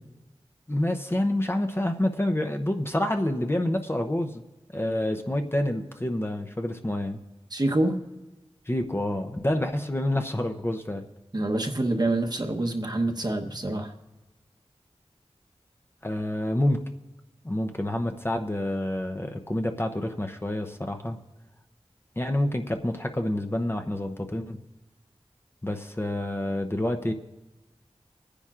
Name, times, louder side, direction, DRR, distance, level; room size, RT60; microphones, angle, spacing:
voice 1, 0.7-4.4 4.7-7.2 8.7-11.0 16.0-16.9 17.4-21.2 22.2-24.6 25.6-27.1, left 1 dB, 20° left, 4 dB, 0.7 m, -28 dB
voice 2, 7.5-8.0 11.3-13.9, right 2 dB, 40° right, 3 dB, 1.0 m, -26 dB
24.5 x 9.9 x 2.5 m, 1.0 s
wide cardioid pair, 50°, 11 cm